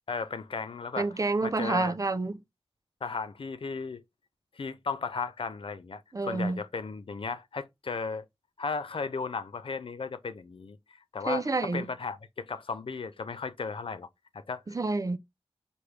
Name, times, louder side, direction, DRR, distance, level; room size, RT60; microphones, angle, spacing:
voice 1, 0.1-1.9 3.0-4.0 4.6-8.2 8.6-10.8 11.1-14.1 14.3-14.6, left 4 dB, 60° left, 0.4 m, -35 dB
voice 2, 1.0-2.4 6.1-6.6 11.3-11.9 14.7-15.2, right 3 dB, 35° right, 0.4 m, -29 dB
4.6 x 2.5 x 3.2 m
wide cardioid pair, 70°, 10 cm